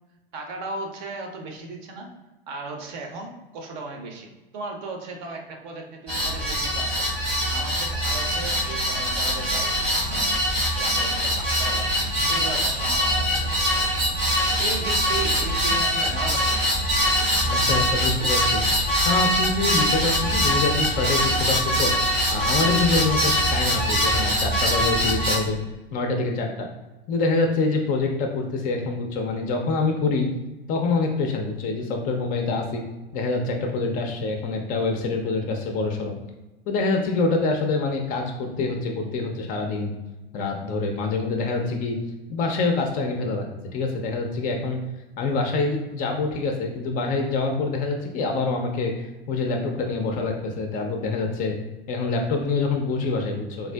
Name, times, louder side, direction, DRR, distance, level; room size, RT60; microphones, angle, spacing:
voice 1, 0.3-2.1 2.5-7.1 7.5-9.7 10.0-10.4 10.8-13.9 14.6-16.7, right 3 dB, 50° right, 2 dB, 0.6 m, -36 dB
sound 1, 6.1-25.4, equal, 80° right, 1.3 m, -23 dB
voice 2, 17.4-21.9 22.3-25.6 25.9-26.7 27.1-30.3 30.7-32.8 33.1-36.1 36.7-39.9 40.3-42.0 42.3-43.5 43.7-44.8 45.2-51.6 51.9-53.7, left 3 dB, 30° left, 3 dB, 0.4 m, -26 dB
3.4 x 2.4 x 2.2 m, 1.1 s
figure-of-eight pair, 85°, 30 cm